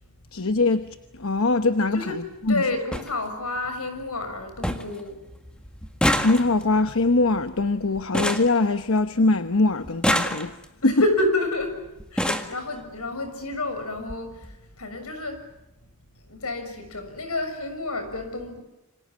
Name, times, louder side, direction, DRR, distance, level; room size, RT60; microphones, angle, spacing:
voice 1, 0.3-0.8 1.1-2.6 6.2-10.6 10.8-11.0 12.3-12.4, left 2 dB, 70° left, 1.0 m, -22 dB
sound 1, 0.8-1.0 2.2-2.3 2.5-2.6 2.9-3.1 3.6-4.0 4.3-4.4 4.6-5.0 5.3-9.3 9.8-10.8 11.6-11.7 12.0-12.6 13.5-13.6 14.0-14.2 14.4-14.5, equal, 5° left, 1.8 m, -27 dB
voice 2, 1.9-2.2 2.5-5.3 10.8-15.6 16.2-18.6, left 2 dB, 90° left, 6.7 m, -29 dB
28.5 x 26.0 x 7.5 m
head